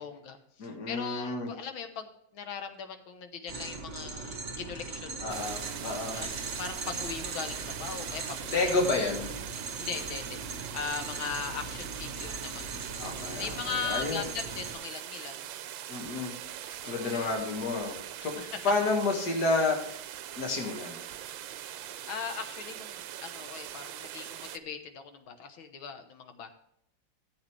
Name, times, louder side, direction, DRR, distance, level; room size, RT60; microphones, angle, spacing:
voice 1, 0.0-5.3 6.1-8.8 9.8-12.8 13.4-15.5 16.8-17.3 18.4-18.7 22.1-26.5, left 6 dB, 85° left, 7 dB, 1.9 m, -39 dB
voice 2, 0.6-1.5 5.2-6.2 8.5-9.3 13.0-14.2 15.9-16.3 16.9-18.4 18.6-20.0 20.4-21.0, left 3 dB, 55° left, 1 dB, 2.5 m, -30 dB
sound 1, 3.5-14.7, right 3 dB, 40° right, 1.8 m, -39 dB
sound 2, 5.3-24.6, right 11 dB, 80° right, 1.3 m, -42 dB
14.0 x 8.0 x 3.3 m, 0.76 s
omnidirectional pair, 2.1 m